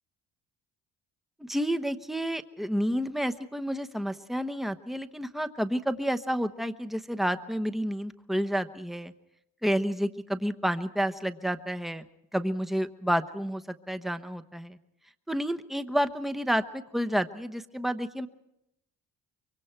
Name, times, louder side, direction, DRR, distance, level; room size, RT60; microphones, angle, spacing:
voice 1, 1.4-9.1 9.6-12.0 12.3-14.8 15.3-18.3, equal, ahead, 8 dB, 1.0 m, -30 dB
24.5 x 23.5 x 4.5 m, 0.83 s
cardioid pair, 90°, 30 cm